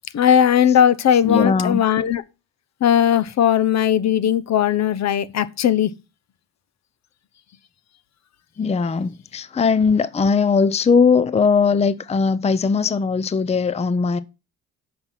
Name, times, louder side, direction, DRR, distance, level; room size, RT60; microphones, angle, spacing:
voice 1, 0.1-2.2 2.8-5.9, left 9 dB, 60° left, 0.9 m, -18 dB
voice 2, 1.2-1.8 8.6-14.2, left 5 dB, 20° left, 0.6 m, -19 dB
7.9 x 5.8 x 5.9 m
cardioid pair, 90°, 30 cm